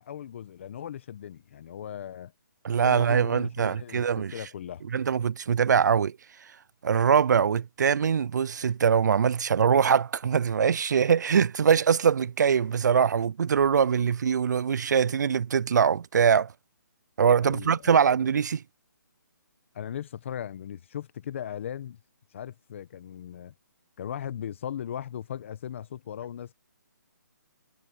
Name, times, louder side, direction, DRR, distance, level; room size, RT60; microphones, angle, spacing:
voice 1, 0.0-2.3 2.8-4.8 17.4-18.0 19.7-22.0 22.3-23.5 24.0-26.5, left 9 dB, 40° left, 1.3 m, -38 dB
voice 2, 2.6-4.3 4.9-6.2 6.8-16.5 17.2-18.6, right 7 dB, 65° right, 0.4 m, -23 dB
hypercardioid pair, 160°, 10 cm